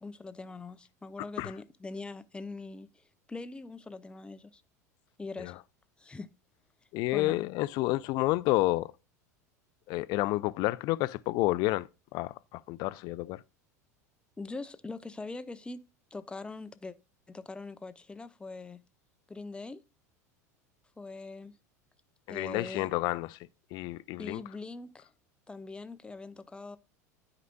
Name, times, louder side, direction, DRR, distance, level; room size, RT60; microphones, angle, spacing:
voice 1, 0.0-2.9 3.3-4.6 5.2-5.6 6.0-6.3 7.1-7.4 14.4-15.8 16.1-16.9 17.3-18.8 19.3-19.8 21.0-21.5 22.3-22.9 24.2-25.1 25.5-26.8, left 3 dB, 10° left, 0.6 m, -42 dB
voice 2, 6.9-8.9 9.9-11.9 12.1-13.4 22.3-23.4 23.7-24.4, left 19 dB, 50° left, 0.4 m, -30 dB
12.5 x 4.9 x 2.2 m
hypercardioid pair, 80°, 9 cm